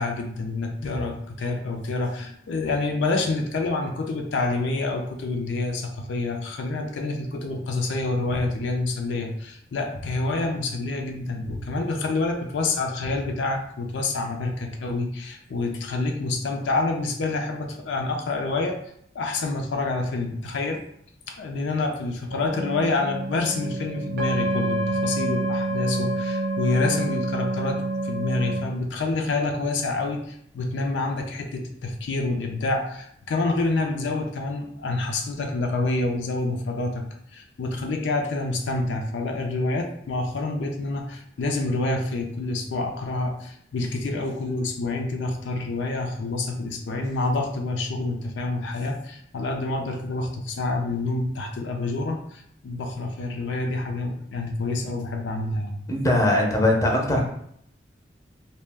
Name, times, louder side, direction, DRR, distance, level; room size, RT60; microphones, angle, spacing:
voice 1, 0.0-18.8 19.1-20.8 21.3-37.0 37.3-55.8, left 2 dB, 80° left, 3 dB, 0.4 m, -27 dB
sound 1, 22.3-28.6, right 2 dB, 60° right, 0.6 m, -28 dB
voice 2, 55.9-57.2, left 1 dB, 20° left, 0 dB, 0.5 m, -20 dB
2.2 x 2.1 x 3.4 m, 0.68 s
head